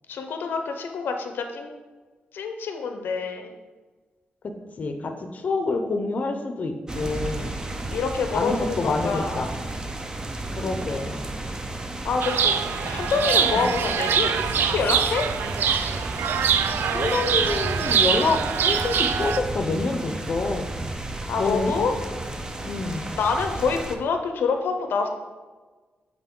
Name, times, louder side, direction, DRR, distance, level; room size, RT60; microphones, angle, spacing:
voice 1, 0.1-1.7 2.3-3.5 7.9-9.4 12.0-12.6 12.9-15.2 21.3-22.0 23.2-25.1, left 5 dB, 85° left, 5 dB, 0.7 m, -26 dB
voice 2, 4.8-7.5 8.3-9.5 10.6-11.2 12.8-12.9 13.5-13.7 16.9-20.7 21.4-21.8 22.6-23.1, left 3 dB, 45° left, 5 dB, 0.6 m, -27 dB
sound 1, 6.9-24.0, right 2 dB, 20° right, 0.6 m, -33 dB
Chirp tweet, 12.2-19.4, right 7 dB, 85° right, 0.4 m, -24 dB
8.2 x 4.0 x 3.7 m, 1.3 s
wide cardioid pair, 120°, 3 cm